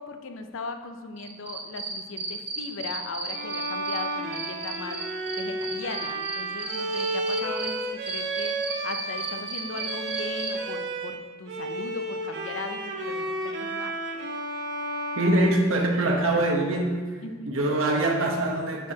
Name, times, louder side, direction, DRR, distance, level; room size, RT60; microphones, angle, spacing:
voice 1, 0.0-14.0 17.2-17.6, left 4 dB, 65° left, 7 dB, 0.5 m, -38 dB
Cricket, 1.2-4.0 4.3-7.7 8.1-10.5, right 4 dB, 25° right, 0.9 m, -34 dB
Bowed string instrument, 3.3-11.2 11.5-16.3, right 2 dB, 55° right, 0.6 m, -32 dB
voice 2, 15.2-17.0 17.4-18.9, right 1 dB, 70° right, 1 dB, 1.0 m, -23 dB
8.7 x 4.7 x 2.8 m, 1.5 s
head